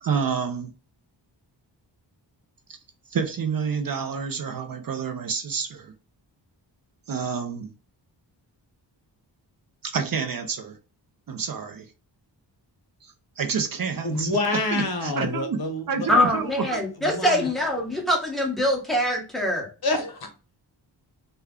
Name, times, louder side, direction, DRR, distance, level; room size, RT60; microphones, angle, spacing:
voice 1, 0.0-0.7 2.7-2.8 3.1-5.9 7.1-7.7 9.8-10.8 11.3-11.9 13.0-14.3 14.7-15.6 15.9-16.8, right 6 dB, 50° right, 0.5 m, -28 dB
voice 2, 14.0-16.1 17.0-17.5 19.8-20.3, left 2 dB, 55° left, 0.9 m, -27 dB
voice 3, 16.1-19.7, left 1 dB, ahead, 1.2 m, -23 dB
3.3 x 2.2 x 3.5 m
wide cardioid pair, 130°, 44 cm